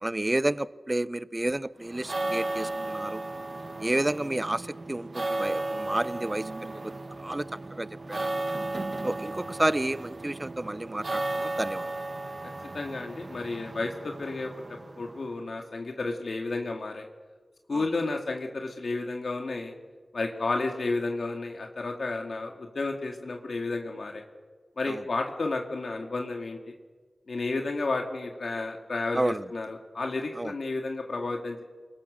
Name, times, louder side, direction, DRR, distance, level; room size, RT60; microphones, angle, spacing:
voice 1, 0.0-3.2 3.8-6.8 7.2-8.3 9.0-11.9 17.7-17.9 24.9-25.0 29.1-29.5 30.3-30.5, right 1 dB, 25° right, 16 dB, 0.7 m, -30 dB
sound 1, 1.8-15.4, right 2 dB, 45° right, 1.1 m, -35 dB
voice 2, 12.7-17.1 17.7-19.7 20.1-24.2 24.8-26.7 27.3-31.6, left 3 dB, 75° left, 2 dB, 2.1 m, -32 dB
29.5 x 21.0 x 6.4 m, 1.4 s
wide cardioid pair, 80°, 0 cm